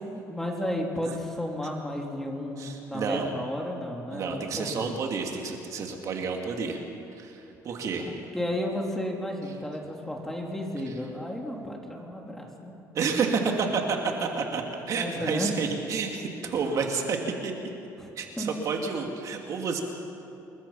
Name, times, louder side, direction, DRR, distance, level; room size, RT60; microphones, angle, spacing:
voice 1, 0.0-5.0 8.0-12.7 14.9-15.5 18.0-18.1 18.4-18.5, left 1 dB, 5° left, 0 dB, 3.3 m, -33 dB
voice 2, 2.6-3.3 4.1-6.8 7.2-8.1 10.9-11.0 12.9-17.2 17.4-17.5 18.2-19.8, right 5 dB, 55° right, 2 dB, 2.8 m, -30 dB
28.5 x 22.0 x 5.8 m, 2.8 s
cardioid pair, 120°, 7 cm